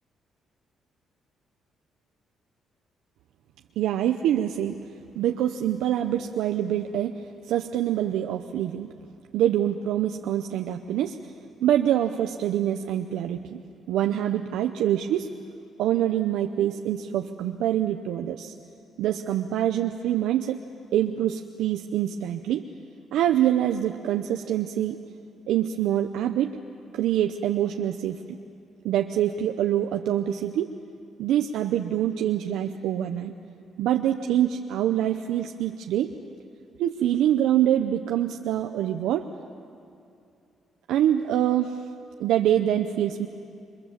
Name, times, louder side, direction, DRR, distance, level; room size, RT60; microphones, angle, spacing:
voice 1, 3.8-4.8 5.1-8.9 9.3-11.2 11.6-13.6 13.9-15.3 15.8-18.5 19.0-20.6 20.9-22.7 23.1-25.0 25.5-26.6 26.9-28.4 28.8-30.7 31.2-33.3 33.8-36.1 36.8-39.3 40.9-41.8 42.2-43.3, right 11 dB, 90° right, 5 dB, 0.8 m, -25 dB
29.0 x 23.5 x 7.5 m, 2.6 s
cardioid pair, 90°, 0 cm